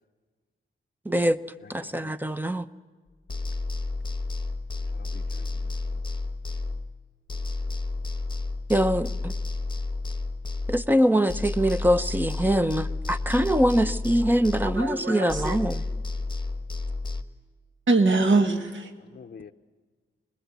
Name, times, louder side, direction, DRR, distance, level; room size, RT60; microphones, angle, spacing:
voice 1, 1.1-1.4 1.7-2.6 8.7-9.3 10.7-15.8, equal, 10° right, 0.7 m, -23 dB
voice 2, 1.6-2.1 4.9-6.0 19.0-19.5, left 6 dB, 45° left, 0.7 m, -48 dB
sound 1, 3.3-7.0 7.3-11.0 11.3-15.0 15.3-17.2, left 3 dB, 20° left, 1.1 m, -31 dB
voice 3, 14.6-15.6 17.9-18.9, right 3 dB, 65° right, 1.8 m, -23 dB
24.5 x 21.0 x 8.3 m
wide cardioid pair, 120°, 21 cm